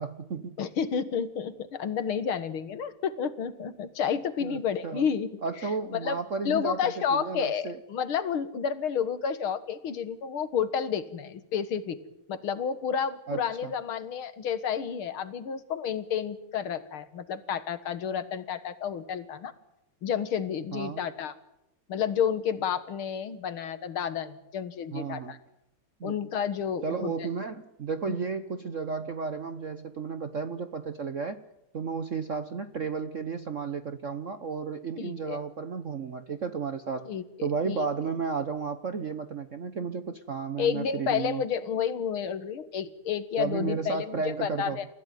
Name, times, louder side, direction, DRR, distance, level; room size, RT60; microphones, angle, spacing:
voice 1, 0.0-0.6 4.4-5.0 5.4-7.8 13.3-13.7 20.7-21.0 24.9-25.4 26.0-26.1 26.8-31.4 31.7-37.1 37.4-41.4 43.4-44.8, right 5 dB, 45° right, 10 dB, 1.1 m, -33 dB
voice 2, 0.6-5.4 5.9-6.2 6.4-12.0 12.3-19.5 20.0-21.3 21.9-25.4 26.0-27.1 28.1-28.2 35.0-35.4 37.1-37.9 40.6-44.9, left 7 dB, 75° left, 12 dB, 2.3 m, -30 dB
29.5 x 16.0 x 9.3 m, 0.86 s
omnidirectional pair, 2.4 m